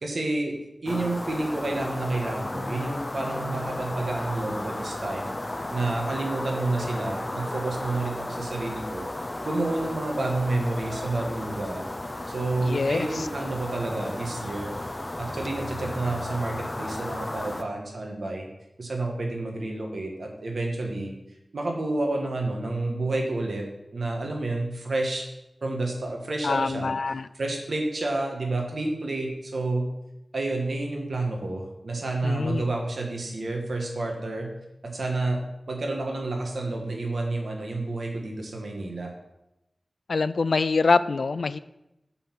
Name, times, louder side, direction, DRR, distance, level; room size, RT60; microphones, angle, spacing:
voice 1, 0.0-0.5 0.8-5.3 5.7-9.1 9.4-11.9 12.3-14.7 15.2-18.5 18.8-21.1 21.5-23.6 23.9-25.3 25.6-26.9 27.3-29.9 30.3-34.5 34.8-39.1, right 2 dB, 80° right, 1 dB, 1.5 m, -29 dB
sound 1, 0.9-17.6, left 1 dB, 25° left, 0.6 m, -34 dB
voice 2, 12.6-13.1 26.4-27.2 32.2-32.6 40.1-41.6, left 4 dB, 80° left, 15 dB, 0.3 m, -24 dB
6.8 x 5.6 x 5.9 m, 0.90 s
wide cardioid pair, 75°, 0 cm